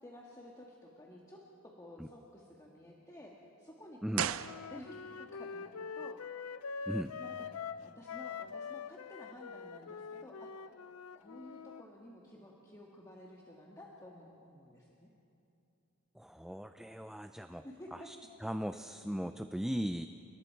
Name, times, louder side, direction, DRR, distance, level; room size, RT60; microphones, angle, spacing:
voice 1, 0.0-3.3 3.6-6.2 7.2-7.5 7.8-10.5 11.1-15.1 17.6-18.1, left 1 dB, 15° left, -2 dB, 1.6 m, -52 dB
sound 1, 4.1-5.2 5.5-5.6, right 9 dB, 65° right, 0.5 m, -37 dB
Wind instrument woodwind instrument, 4.4-11.8, left 5 dB, 80° left, 0.5 m, -44 dB
voice 2, 16.2-17.6 17.9-18.2 18.4-20.1, equal, ahead, 8 dB, 0.4 m, -38 dB
30.0 x 19.0 x 4.6 m, 2.8 s
head